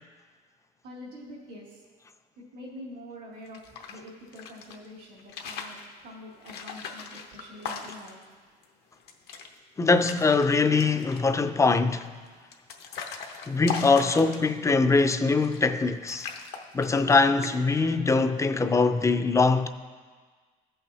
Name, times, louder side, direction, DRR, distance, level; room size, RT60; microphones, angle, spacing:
voice 1, 0.8-1.8 2.4-8.2, left 1 dB, 85° right, 2.4 m, -45 dB
sound 1, 3.4-4.8 5.2-5.9 6.4-8.2 8.6-8.7 9.0-9.5 9.8-10.5 10.8-11.3 12.0-14.7 15.4-15.8 16.1-17.2 17.4-17.8, left 6 dB, 80° left, 0.9 m, -38 dB
voice 2, 9.8-12.1 13.5-16.3 16.7-19.7, left 3 dB, 20° left, 0.4 m, -22 dB
17.0 x 5.7 x 2.7 m
cardioid pair, 110°, 17 cm